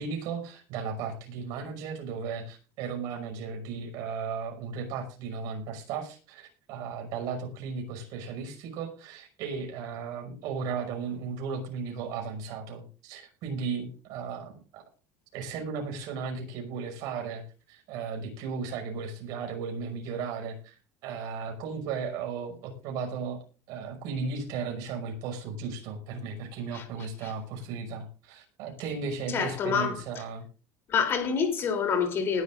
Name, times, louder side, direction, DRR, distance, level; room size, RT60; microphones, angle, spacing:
voice 1, 0.0-14.8 15.3-17.4 17.7-23.4 23.7-30.4, right 5 dB, 55° right, 5.6 m, -35 dB
voice 2, 29.3-30.0 30.9-32.4, left 6 dB, 30° left, 3.3 m, -27 dB
20.0 x 11.0 x 2.6 m
cardioid pair, 165°, 7 cm